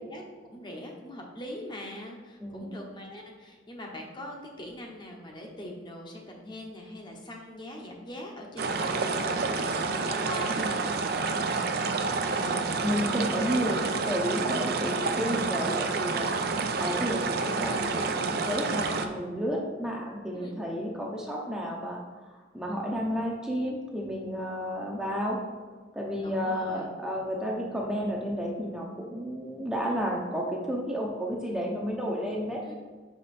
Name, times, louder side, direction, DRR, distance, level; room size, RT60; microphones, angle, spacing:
voice 1, 0.1-11.6 20.3-20.6 26.2-26.9 32.6-32.8, left 1 dB, 25° left, 1 dB, 0.8 m, -42 dB
sound 1, 8.6-19.1, right 4 dB, 55° right, 0.5 m, -29 dB
voice 2, 12.3-16.3 16.8-22.0 22.3-25.4 25.9-32.6, equal, 5° right, -2 dB, 0.7 m, -31 dB
5.3 x 5.1 x 4.2 m, 1.4 s
head